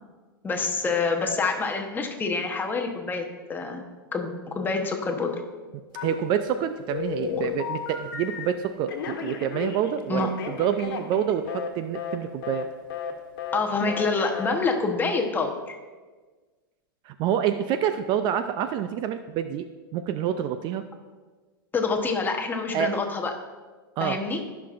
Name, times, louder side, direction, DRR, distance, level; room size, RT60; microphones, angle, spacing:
voice 1, 0.4-3.8 4.1-5.4 7.2-7.4 10.1-10.3 13.5-15.5 21.7-23.3 24.0-24.5, left 4 dB, 15° left, 3 dB, 1.0 m, -27 dB
Telephone, 5.9-6.5 6.9-8.5 8.9-11.7 11.9-12.2 12.4-12.6 12.9-13.1 13.4-13.6 13.8-14.1 14.3-14.5, left 7 dB, 70° left, 1.3 m, -33 dB
voice 2, 6.0-12.7 17.1-19.7 19.9-20.9 22.7-22.9 24.0-24.2, right 9 dB, 40° right, 10 dB, 0.4 m, -27 dB
15.0 x 5.9 x 2.5 m, 1.4 s
hypercardioid pair, 125°, 12 cm